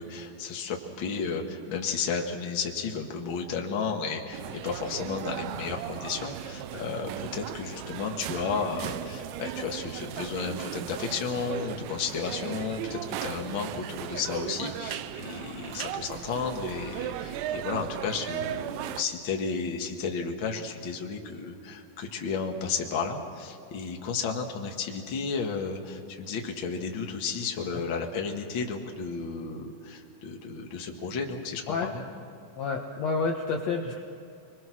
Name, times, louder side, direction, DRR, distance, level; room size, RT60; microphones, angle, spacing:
voice 1, 0.0-32.0, left 5 dB, 45° left, 1 dB, 1.6 m, -33 dB
sound 1, 4.3-19.0, right 11 dB, 90° right, 3.2 m, -37 dB
voice 2, 32.6-34.0, left 4 dB, 75° left, 0 dB, 1.6 m, -29 dB
29.0 x 22.0 x 6.3 m, 2.6 s
omnidirectional pair, 5.2 m